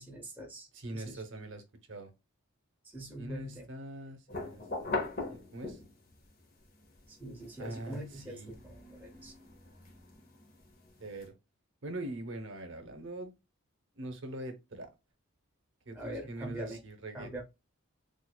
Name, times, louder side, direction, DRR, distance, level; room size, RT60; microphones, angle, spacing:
voice 1, 0.0-0.7 0.9-1.2 2.8-3.6 7.1-9.3 15.9-16.8 17.1-17.4, right 1 dB, 10° right, 0.6 m, -43 dB
voice 2, 0.7-1.6 1.9-2.1 3.2-4.9 5.3-5.8 7.6-8.5 11.0-11.3 11.8-13.3 14.0-14.9 15.9-17.4, right 1 dB, 60° right, 0.7 m, -43 dB
sound 1, 4.3-6.1 6.6-11.2, left 3 dB, 40° left, 0.8 m, -41 dB
4.4 x 2.4 x 2.2 m
head